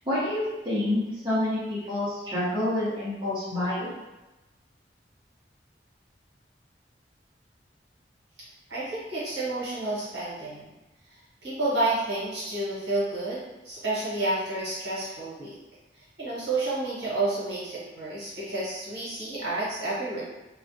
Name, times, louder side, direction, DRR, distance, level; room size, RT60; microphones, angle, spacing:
voice 1, 0.0-3.9, left 1 dB, 25° right, -10 dB, 0.7 m, -28 dB
voice 2, 8.7-10.7 11.4-13.4 13.6-15.5 16.2-20.2, right 2 dB, 75° right, -8 dB, 1.0 m, -30 dB
2.3 x 2.1 x 2.6 m, 1.1 s
head